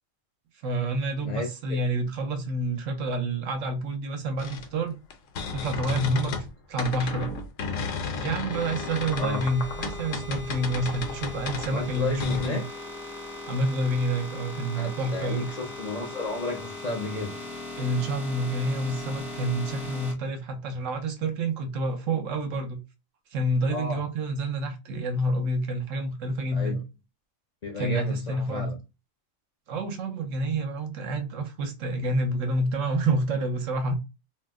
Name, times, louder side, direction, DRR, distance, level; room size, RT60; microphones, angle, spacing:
voice 1, 0.6-5.0 5.5-6.4 6.7-7.3 8.2-12.6 13.5-15.5 17.8-22.8 23.3-26.8 27.8-28.7 29.7-34.0, right 1 dB, 70° right, 1.1 m, -28 dB
voice 2, 1.2-1.8 9.2-9.5 11.7-12.7 14.8-17.4 23.7-24.1 26.5-26.8 27.6-28.8, left 3 dB, 45° left, 0.5 m, -33 dB
sound 1, 4.4-6.5 6.8-12.5, left 4 dB, 75° left, 1.0 m, -34 dB
sound 2, 8.5-20.1, left 2 dB, ahead, 0.5 m, -39 dB
2.7 x 2.0 x 3.4 m
omnidirectional pair, 1.4 m